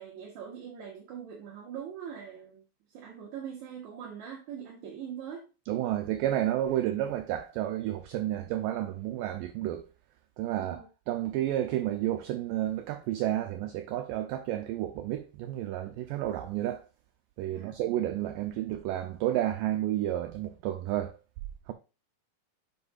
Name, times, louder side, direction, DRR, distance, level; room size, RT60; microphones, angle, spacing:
voice 1, 0.0-2.6 2.9-5.4 10.6-10.9 17.5-17.8, right 8 dB, 65° right, 2.1 m, -42 dB
voice 2, 5.7-9.9 10.4-16.8 17.4-21.2 21.7-21.8, right 13 dB, 80° right, 2.0 m, -31 dB
8.0 x 5.6 x 2.4 m
omnidirectional pair, 4.2 m